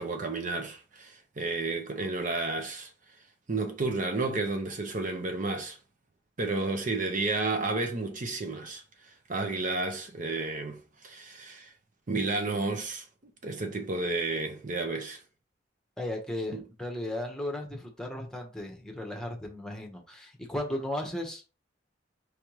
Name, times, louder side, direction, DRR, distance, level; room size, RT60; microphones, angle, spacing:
voice 1, 0.0-2.9 3.5-5.8 6.4-11.7 12.1-13.1 13.4-15.2 16.5-16.6, right 3 dB, 40° right, 0.7 m, -32 dB
voice 2, 16.0-21.6, left 1 dB, 5° left, 1.0 m, -35 dB
4.7 x 3.4 x 3.0 m
head